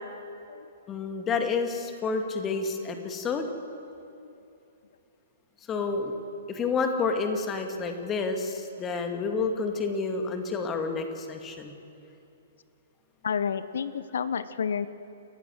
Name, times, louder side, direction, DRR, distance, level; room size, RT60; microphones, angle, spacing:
voice 1, 0.9-3.5 5.7-6.1 6.5-11.7, left 4 dB, 20° left, 5 dB, 2.2 m, -29 dB
voice 2, 13.2-14.9, left 7 dB, 60° left, 15 dB, 0.8 m, -30 dB
29.5 x 15.0 x 7.9 m, 2.7 s
figure-of-eight pair, 115°, 0 cm